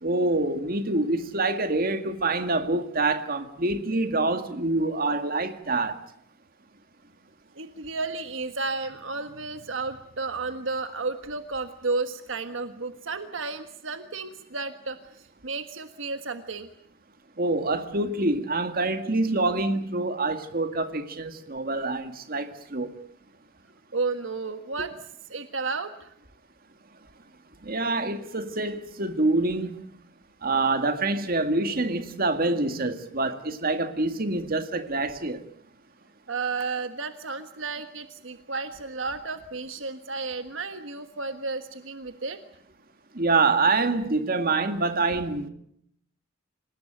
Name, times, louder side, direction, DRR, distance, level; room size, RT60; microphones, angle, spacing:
voice 1, 0.0-6.0 17.4-22.9 27.6-29.8 30.4-35.4 43.1-45.5, right 2 dB, 45° right, 2.0 m, -26 dB
voice 2, 7.5-16.7 23.9-24.9 25.3-26.1 36.3-42.4, right 3 dB, 70° right, 1.5 m, -32 dB
27.5 x 18.5 x 9.1 m
head